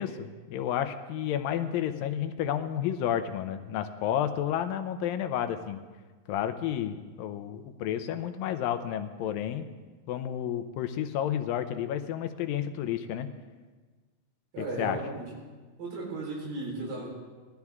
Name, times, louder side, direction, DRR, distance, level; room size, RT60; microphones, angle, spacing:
voice 1, 0.0-5.8 6.3-9.7 10.1-13.3 14.6-15.0, left 10 dB, 90° left, 9 dB, 2.5 m, -31 dB
voice 2, 14.5-15.3 15.8-17.2, right 2 dB, 75° right, -3 dB, 5.8 m, -35 dB
20.0 x 13.0 x 3.6 m, 1.4 s
omnidirectional pair, 4.0 m